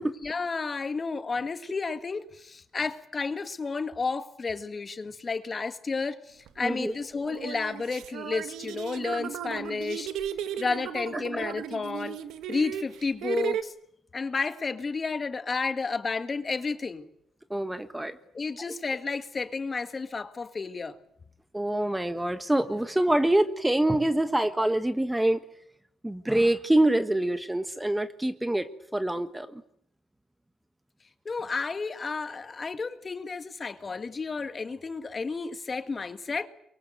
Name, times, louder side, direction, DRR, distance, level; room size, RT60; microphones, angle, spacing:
voice 1, 0.2-10.1 10.6-12.2 12.5-13.7 14.1-17.1 18.3-21.0 31.3-36.5, left 4 dB, 35° left, 1.9 m, -31 dB
sound 1, 6.5-6.6 7.3-13.6, right 10 dB, 85° right, 1.4 m, -35 dB
voice 2, 6.6-6.9 17.5-18.2 21.5-25.4 26.0-29.6, right 1 dB, 10° right, 1.4 m, -25 dB
23.5 x 23.0 x 9.2 m
cardioid pair, 90°, 0 cm